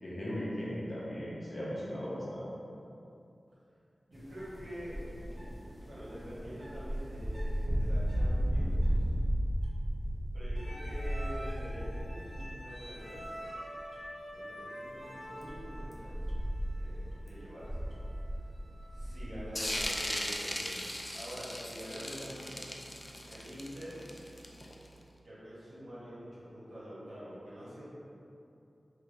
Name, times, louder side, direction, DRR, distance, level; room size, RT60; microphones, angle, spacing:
voice 1, 0.0-2.5, equal, 45° left, -8 dB, 1.1 m, -37 dB
sound 1, 4.1-12.6 12.9-13.4 13.9-14.0 14.9-19.9, equal, 10° right, 0.7 m, -35 dB
voice 2, 4.1-5.0 5.9-9.0 10.3-13.5 14.3-16.2 16.7-18.0 18.9-22.8 23.3-24.0 25.2-27.9, equal, 80° right, -10 dB, 1.3 m, -46 dB
sound 2, 10.6-20.1, equal, 75° left, 1.3 m, -47 dB
sound 3, 19.6-24.9, left 1 dB, 25° left, 0.4 m, -38 dB
3.0 x 3.0 x 3.6 m, 2.7 s
cardioid pair, 55°, 0 cm